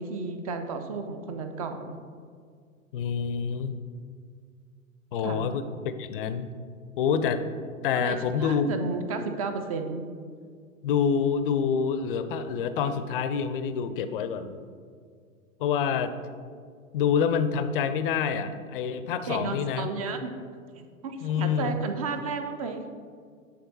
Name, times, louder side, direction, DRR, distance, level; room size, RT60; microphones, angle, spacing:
voice 1, 0.0-2.0 5.2-5.5 7.9-10.1 19.3-20.3 20.8-22.8, right 4 dB, 30° right, 7 dB, 0.3 m, -33 dB
voice 2, 2.9-3.8 5.1-6.5 7.0-7.4 7.8-8.7 10.8-14.5 15.6-16.1 16.9-19.9 21.2-21.7, left 7 dB, 40° left, 11 dB, 0.4 m, -27 dB
8.4 x 3.6 x 3.9 m, 2.1 s
figure-of-eight pair, 100°, 42 cm